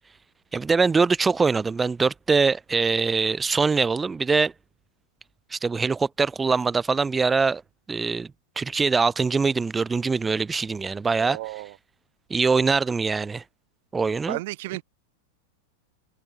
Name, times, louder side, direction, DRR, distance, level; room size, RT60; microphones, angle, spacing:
voice 1, 0.5-4.5 5.5-7.6 7.9-11.6 12.3-13.4 13.9-14.4, right 4 dB, 15° right, 5.0 m, -23 dB
voice 2, 11.2-11.7 14.3-14.8, right 19 dB, 50° right, 5.2 m, -33 dB
figure-of-eight pair, 90°, 0 cm